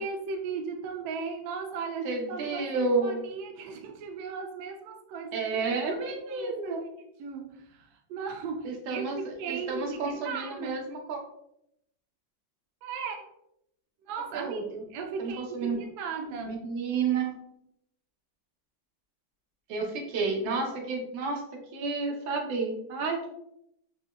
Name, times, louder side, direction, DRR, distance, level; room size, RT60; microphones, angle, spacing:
voice 1, 0.0-5.4 5.7-6.8 7.2-10.8 12.8-13.3 14.0-14.6 14.9-16.7, right 5 dB, 70° right, 3 dB, 1.0 m, -37 dB
voice 2, 2.0-3.2 5.3-6.8 8.6-11.2 14.3-14.8 15.2-15.8 16.5-17.3 19.7-23.3, right 4 dB, 85° right, 1 dB, 1.5 m, -31 dB
4.0 x 2.8 x 2.2 m, 0.77 s
omnidirectional pair, 2.0 m